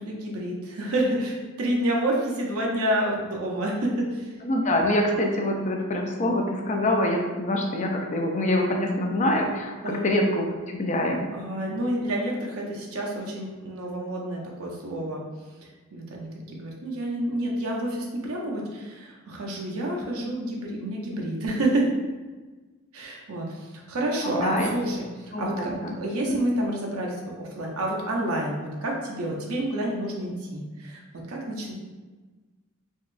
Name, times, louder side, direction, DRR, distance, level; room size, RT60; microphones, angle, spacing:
voice 1, 0.0-4.3 9.8-10.0 11.3-15.2 15.9-21.9 22.9-31.7, right 1 dB, 90° right, -2 dB, 0.7 m, -29 dB
voice 2, 4.4-11.2 24.2-24.7 25.3-26.0 26.3-26.4, left 1 dB, 35° left, 1 dB, 0.4 m, -25 dB
3.6 x 3.0 x 2.5 m, 1.3 s
head